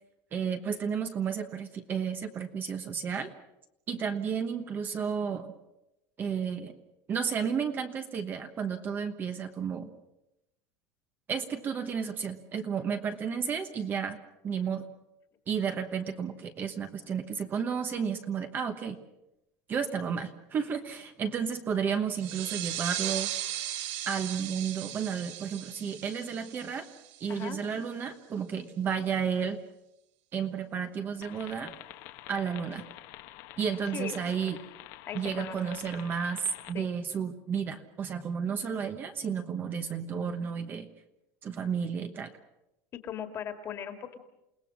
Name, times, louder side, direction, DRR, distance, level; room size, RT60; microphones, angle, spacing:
voice 1, 0.3-3.3 3.9-5.5 6.2-6.8 7.1-9.9 11.3-14.2 14.4-14.8 15.5-19.0 19.7-23.3 24.1-26.9 27.2-29.6 30.3-31.7 32.3-32.8 33.6-34.6 35.1-40.9 41.4-42.4, right 7 dB, 25° right, 7 dB, 1.1 m, -32 dB
sound 1, 22.2-27.5, right 13 dB, 60° right, 1.7 m, -37 dB
voice 2, 27.3-27.6 33.9-34.2 35.1-35.6 36.7-36.9 43.0-44.2, left 9 dB, 30° left, 7 dB, 2.1 m, -38 dB
sound 2, 31.2-36.7, left 15 dB, 55° left, 1.4 m, -48 dB
29.0 x 18.5 x 6.2 m, 0.89 s
cardioid pair, 170°, 8 cm